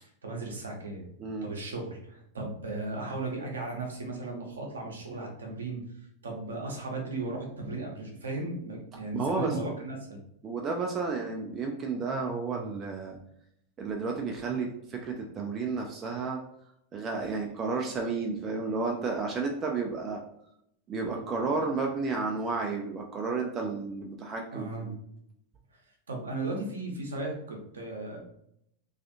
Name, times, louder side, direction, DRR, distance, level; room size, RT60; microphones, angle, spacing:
voice 1, 0.0-1.1 1.4-5.8 6.2-10.2 24.5-24.9 26.1-28.2, right 2 dB, 70° right, 0 dB, 0.7 m, -36 dB
voice 2, 1.2-1.5 9.1-9.6 10.4-13.2 13.8-16.4 16.9-20.2 20.9-25.0, right 4 dB, 25° right, 1 dB, 0.4 m, -32 dB
2.4 x 2.4 x 2.6 m, 0.73 s
figure-of-eight pair, 90°, 0 cm